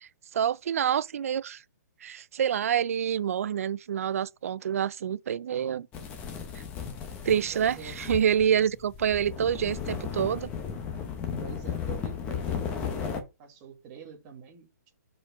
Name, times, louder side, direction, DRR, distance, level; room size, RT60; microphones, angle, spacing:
voice 1, 0.0-1.6 2.0-5.9 6.6-6.7 7.2-10.5, right 9 dB, 55° right, 0.4 m, -27 dB
sound 1, 5.9-13.2, left 7 dB, 15° left, 0.7 m, -35 dB
voice 2, 7.5-7.9 11.4-13.1 13.4-14.9, right 7 dB, 20° right, 1.4 m, -45 dB
5.0 x 4.4 x 5.6 m
hypercardioid pair, 170°, 9 cm